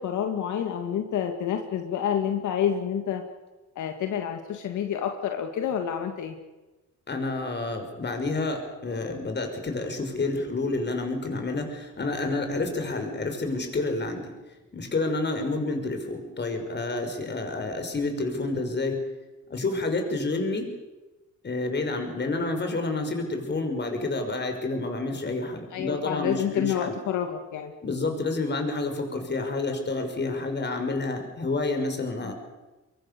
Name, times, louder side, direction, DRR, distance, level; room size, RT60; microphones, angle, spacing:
voice 1, 0.0-3.2 3.8-6.4 25.7-27.7 32.2-32.3, left 9 dB, 75° left, 5 dB, 2.2 m, -28 dB
voice 2, 7.1-14.3 14.7-19.0 19.5-20.7 21.4-27.0 27.8-32.3, left 2 dB, 35° left, 5 dB, 5.9 m, -29 dB
24.0 x 23.0 x 6.9 m, 1.1 s
cardioid pair, 90°, 30 cm